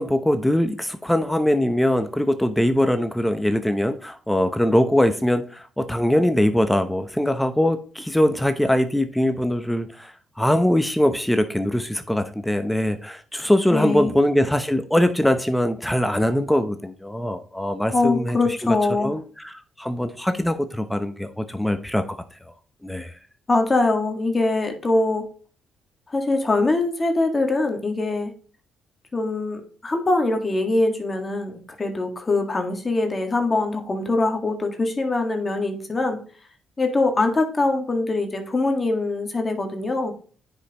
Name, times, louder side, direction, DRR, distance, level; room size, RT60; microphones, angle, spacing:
voice 1, 0.0-18.4 18.7-22.2 22.5-22.6 22.8-23.1, left 1 dB, 5° left, 0.8 m, -22 dB
voice 2, 13.7-14.1 17.9-19.1 23.5-25.2 26.1-28.3 29.1-36.2 36.8-40.1, left 2 dB, 25° left, 1.7 m, -23 dB
9.7 x 5.4 x 3.0 m
cardioid pair, 90°, 0 cm